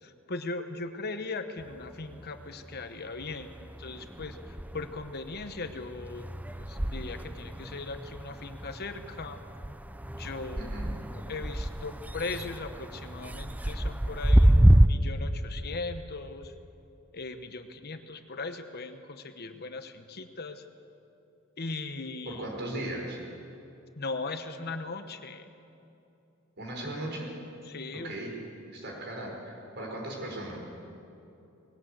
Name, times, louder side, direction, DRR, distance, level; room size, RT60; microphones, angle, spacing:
voice 1, 0.0-6.3 6.6-9.4 10.1-10.8 11.1-16.5 17.1-20.6 21.6-22.5 24.0-25.5 27.7-28.1, left 3 dB, 50° left, 8 dB, 1.1 m, -39 dB
sound 1, 1.6-2.8 3.2-14.9, right 1 dB, 10° right, 0.5 m, -28 dB
voice 2, 10.6-10.9 22.3-23.2 26.6-27.3 27.9-28.3 28.7-30.6, right 1 dB, 55° right, 0 dB, 5.1 m, -37 dB
20.0 x 17.5 x 8.0 m, 2.8 s
head